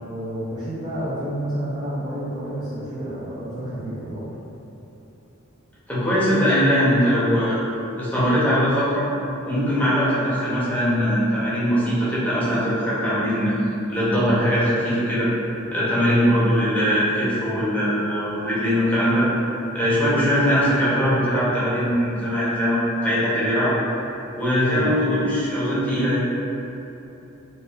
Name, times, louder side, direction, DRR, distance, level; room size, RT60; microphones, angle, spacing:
voice 1, 0.0-4.3 21.4-21.6 24.7-24.9, right 1 dB, 20° right, -10 dB, 0.4 m, -30 dB
voice 2, 5.9-7.6 8.0-9.0 9.4-13.5 13.9-15.3 15.7-19.3 19.7-23.7 24.3-26.2, equal, 10° left, -10 dB, 0.7 m, -21 dB
4.0 x 2.4 x 2.4 m, 3.0 s
head